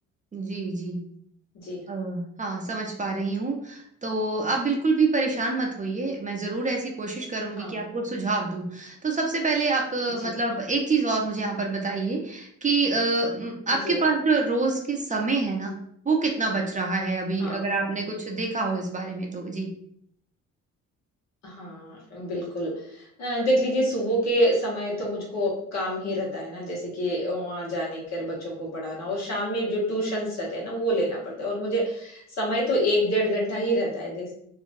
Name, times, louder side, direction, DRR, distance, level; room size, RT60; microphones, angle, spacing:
voice 1, 0.3-1.0 1.9-15.7 16.1-19.7, right 3 dB, 25° right, 1 dB, 0.5 m, -26 dB
voice 2, 7.6-7.9 10.2-10.4 13.8-14.0 17.4-17.6 21.4-34.3, equal, 60° left, -3 dB, 1.2 m, -27 dB
2.8 x 2.5 x 2.5 m, 0.69 s
cardioid pair, 90°, 30 cm